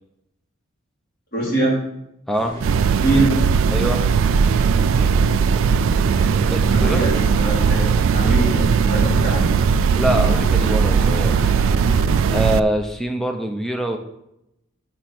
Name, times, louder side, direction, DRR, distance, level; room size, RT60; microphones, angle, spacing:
voice 1, 1.3-1.8 3.0-3.3 6.7-7.8 8.1-9.5, right 2 dB, 45° left, -6 dB, 4.0 m, -22 dB
sound 1, 2.3-12.5, left 1 dB, 20° left, 3.2 m, -35 dB
sound 2, 2.6-12.6, right 6 dB, 80° right, 0.3 m, -18 dB
voice 2, 3.7-4.0 6.5-7.0 9.9-11.3 12.3-14.0, right 1 dB, ahead, 4 dB, 0.7 m, -24 dB
6.9 x 6.8 x 5.9 m, 0.85 s
head